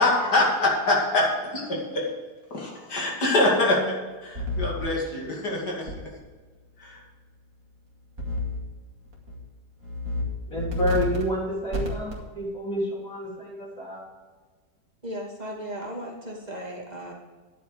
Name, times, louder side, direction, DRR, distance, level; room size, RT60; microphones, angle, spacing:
voice 1, 0.0-2.1 2.5-6.1 6.8-7.0, left 2 dB, 70° left, -2 dB, 3.0 m, -25 dB
sound 1, 4.4-4.9 5.9-6.0 8.2-8.6 9.1-9.4 9.8-10.2 10.6-11.2 11.7-12.2, left 2 dB, 55° right, 2.6 m, -29 dB
voice 2, 10.5-14.1, equal, 50° left, -5 dB, 3.9 m, -29 dB
voice 3, 15.0-17.1, equal, 25° right, -1 dB, 2.5 m, -36 dB
11.0 x 8.3 x 4.9 m, 1.4 s
omnidirectional pair, 1.8 m